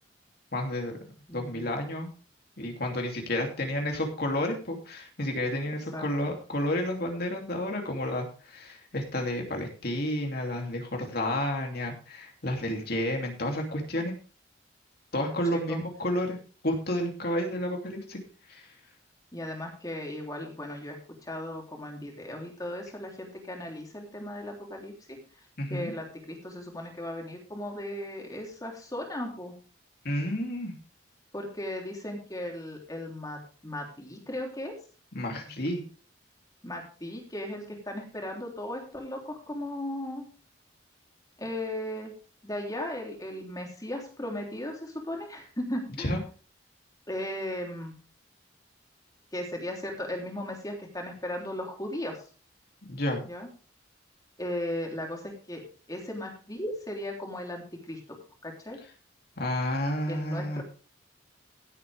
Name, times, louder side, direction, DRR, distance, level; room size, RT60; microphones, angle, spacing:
voice 1, 0.5-1.0 1.3-2.1 2.6-14.1 15.1-16.4 16.6-18.2 18.5-18.6 25.6-25.9 30.0-30.7 35.1-35.8 46.0-46.2 52.8-53.2 59.4-60.6, left 1 dB, 55° left, 2 dB, 2.9 m, -31 dB
voice 2, 1.3-1.7 5.9-6.0 15.5-15.8 19.3-25.2 25.7-29.6 31.3-34.7 36.6-40.3 41.4-42.1 42.4-46.1 47.1-47.9 49.3-52.2 53.2-53.5 54.4-55.6 55.9-58.2 58.4-58.8 60.1-60.6, left 1 dB, 20° left, 1 dB, 3.4 m, -36 dB
17.0 x 8.6 x 3.5 m, 0.37 s
head